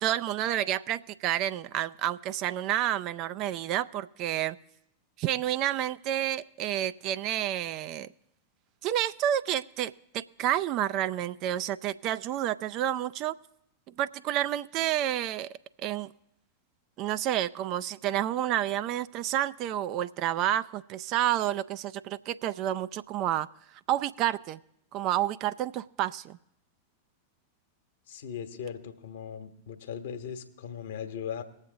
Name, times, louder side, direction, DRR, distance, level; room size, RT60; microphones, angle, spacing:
voice 1, 0.0-4.6 5.2-8.1 8.8-13.3 14.0-15.5 15.8-16.1 17.0-23.5 23.7-24.6 24.9-26.4, right 12 dB, 40° right, 14 dB, 0.4 m, -29 dB
voice 2, 28.1-31.4, left 8 dB, 60° left, 8 dB, 1.1 m, -38 dB
19.5 x 7.3 x 3.9 m, 0.76 s
figure-of-eight pair, 90°, 0 cm